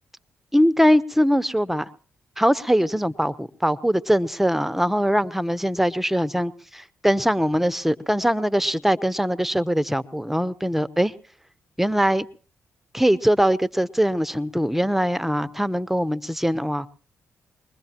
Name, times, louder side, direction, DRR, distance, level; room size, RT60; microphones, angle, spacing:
voice 1, 0.5-1.9 2.4-11.1 11.8-12.3 12.9-16.9, equal, 5° right, 0.8 m, -22 dB
23.0 x 21.0 x 2.9 m
supercardioid pair, 45°, 5 cm